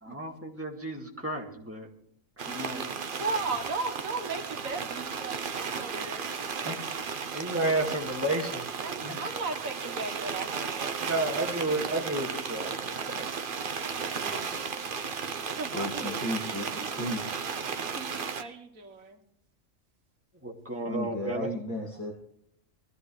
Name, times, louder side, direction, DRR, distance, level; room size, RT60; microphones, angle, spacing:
voice 1, 0.1-1.9 2.5-2.9 6.7-6.8 7.3-8.7 9.0-9.1 11.0-13.3 14.1-14.5 20.4-21.5, right 2 dB, 10° right, -1 dB, 2.1 m, -32 dB
sound 1, 2.4-18.4, right 6 dB, 45° right, 0.9 m, -34 dB
voice 2, 3.2-6.3 8.8-11.0 15.5-16.9 18.0-19.2, right 3 dB, 85° right, 5 dB, 1.8 m, -36 dB
voice 3, 15.7-17.7 20.8-22.1, left 1 dB, 15° left, -3 dB, 2.0 m, -35 dB
20.5 x 14.0 x 3.3 m, 0.71 s
omnidirectional pair, 1.4 m